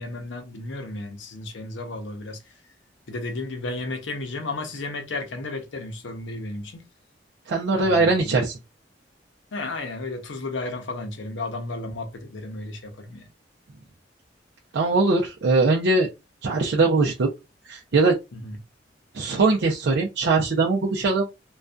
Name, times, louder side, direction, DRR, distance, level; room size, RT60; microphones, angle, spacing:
voice 1, 0.0-2.4 3.1-6.8 7.7-8.3 9.5-13.3 18.3-18.6, left 2 dB, 80° left, 0.6 m, -33 dB
voice 2, 7.5-8.6 14.7-16.1 16.4-17.3 17.7-18.1 19.1-21.3, right 3 dB, 65° right, 0.5 m, -21 dB
2.5 x 2.2 x 2.2 m
head